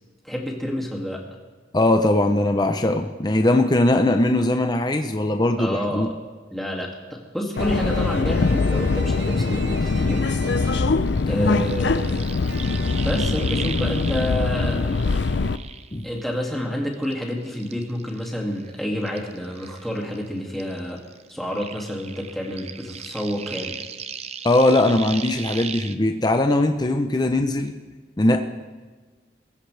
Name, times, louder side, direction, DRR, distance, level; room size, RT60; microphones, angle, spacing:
voice 1, 0.2-1.2 5.6-6.1 6.5-10.2 11.3-12.3 13.0-15.0 16.0-21.0 21.3-23.7, equal, ahead, -2 dB, 2.3 m, -29 dB
voice 2, 1.7-6.1 11.3-11.6 15.9-16.1 24.4-27.8 28.2-28.4, left 1 dB, 25° left, 5 dB, 0.6 m, -20 dB
sound 1, 7.5-11.2 12.5-13.4, right 5 dB, 70° right, 1.0 m, -41 dB
Subway metro underground, 7.6-15.6, left 4 dB, 75° left, 0.5 m, -22 dB
sound 2, 11.1-16.6 16.9-20.3 20.5-25.9, right 7 dB, 35° right, 0.6 m, -37 dB
22.0 x 15.5 x 3.4 m, 1.4 s
head